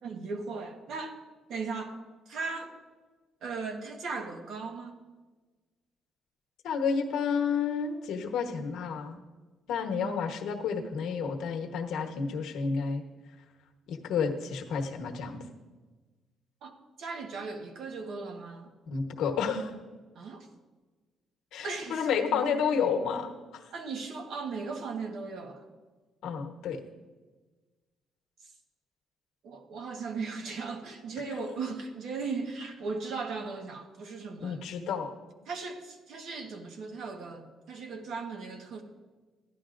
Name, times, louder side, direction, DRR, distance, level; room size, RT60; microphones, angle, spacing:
voice 1, 0.0-1.1 1.5-2.0 2.3-2.7 3.4-5.0 16.6-16.7 17.0-18.7 20.1-20.5 21.6-22.8 23.7-25.6 29.4-34.6 35.5-38.8, right 4 dB, 65° right, 4 dB, 1.3 m, -37 dB
voice 2, 6.6-9.2 9.7-13.0 13.9-15.4 18.9-19.7 21.5-23.6 26.2-26.8 31.4-31.5 34.4-35.1, left 6 dB, 80° left, 4 dB, 1.1 m, -30 dB
15.0 x 11.0 x 2.5 m, 1.3 s
cardioid pair, 130°, 0 cm